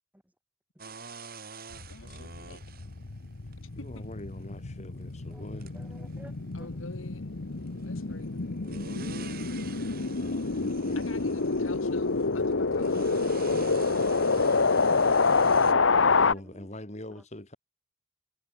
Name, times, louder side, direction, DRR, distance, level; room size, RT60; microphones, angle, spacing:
sound 1, 0.8-15.7, right 4 dB, 50° right, 6.2 m, -47 dB
sound 2, 1.7-16.3, left 4 dB, 70° left, 1.0 m, -27 dB
voice 1, 1.9-2.6 3.8-4.0 6.5-7.2 7.8-8.5 11.0-13.3, left 2 dB, 90° left, 4.5 m, -47 dB
voice 2, 3.7-5.8 10.1-11.1 16.2-17.6, left 1 dB, 35° left, 3.4 m, -43 dB
voice 3, 5.7-6.3 6.6-6.7 15.1-16.7, equal, 10° right, 2.4 m, -51 dB
head